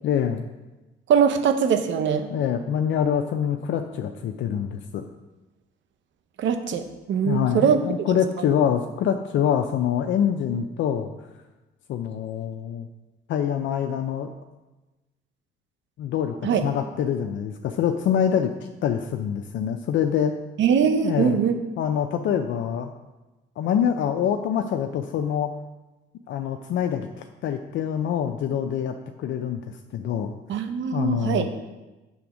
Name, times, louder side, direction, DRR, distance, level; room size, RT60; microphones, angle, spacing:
voice 1, 0.0-0.4 2.3-5.1 7.2-11.1 11.9-12.9 13.3-14.3 16.0-16.3 16.6-18.5 18.8-20.4 21.0-21.4 21.8-22.9 23.6-25.5 26.3-30.6 30.9-31.5, left 8 dB, 70° left, 5 dB, 0.5 m, -25 dB
voice 2, 1.1-2.3 6.4-7.8 16.4-16.7 20.6-21.6 30.5-31.5, right 7 dB, 70° right, 8 dB, 0.8 m, -22 dB
8.4 x 3.5 x 6.1 m, 1.1 s
cardioid pair, 90°, 20 cm